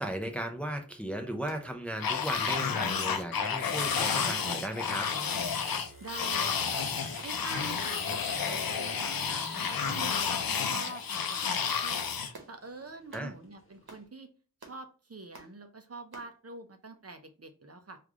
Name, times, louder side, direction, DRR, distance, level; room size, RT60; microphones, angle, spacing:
voice 1, 0.0-5.1 13.1-13.3, right 1 dB, 5° left, 5 dB, 0.5 m, -36 dB
sound 1, 1.5-1.7 2.5-2.7 3.4-3.6 4.4-4.6 5.3-5.5 6.2-6.5 7.2-7.4 8.1-8.3 9.0-9.2 9.8-10.0 10.7-10.9 11.5-11.7 12.3-12.5 13.1-13.3 13.9-14.1 14.6-14.8 15.3-15.5 16.1-16.3, right 2 dB, 80° right, 0.9 m, -49 dB
sound 2, 2.0-12.3, left 6 dB, 70° left, 0.5 m, -31 dB
sound 3, 4.8-14.0, left 1 dB, 35° left, 1.0 m, -48 dB
voice 2, 6.0-6.9 7.2-12.0 12.5-14.3 14.6-18.0, right 3 dB, 45° right, 6 dB, 0.6 m, -45 dB
3.1 x 2.4 x 3.4 m, 0.37 s
wide cardioid pair, 45°, 36 cm